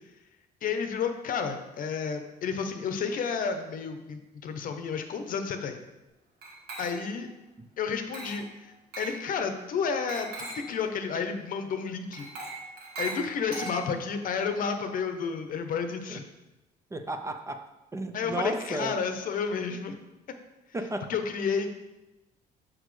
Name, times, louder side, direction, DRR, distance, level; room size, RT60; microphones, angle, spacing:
voice 1, 0.6-5.8 6.8-7.3 7.8-12.3 13.0-16.2 18.1-20.0 21.1-21.7, left 6 dB, 55° left, 7 dB, 0.7 m, -31 dB
Glass, 6.4-7.3 8.1-8.5 8.9-9.2 10.1-10.7 12.1-14.2, right 2 dB, 80° right, 1.9 m, -39 dB
voice 2, 16.9-17.6 17.9-19.0 20.7-21.2, right 2 dB, 15° right, 7 dB, 0.5 m, -34 dB
6.3 x 6.1 x 3.2 m, 1.0 s
cardioid pair, 110°, 17 cm